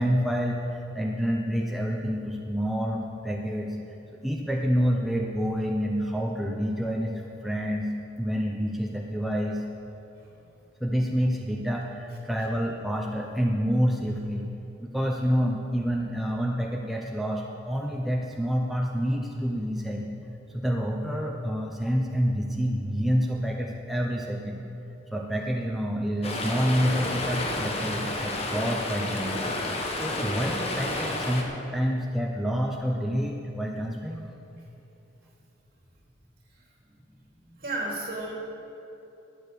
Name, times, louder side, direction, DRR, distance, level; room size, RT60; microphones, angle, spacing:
voice 1, 0.0-3.8 4.2-7.9 8.2-9.6 10.8-14.5 14.8-20.1 20.5-24.6 25.1-29.4 30.0-34.2, equal, ahead, -1 dB, 0.7 m, -28 dB
Stream, 26.2-31.4, left 2 dB, 35° left, 1.3 m, -30 dB
voice 2, 37.4-38.3, right 2 dB, 50° right, -3 dB, 3.0 m, -32 dB
12.5 x 9.1 x 6.8 m, 2.8 s
head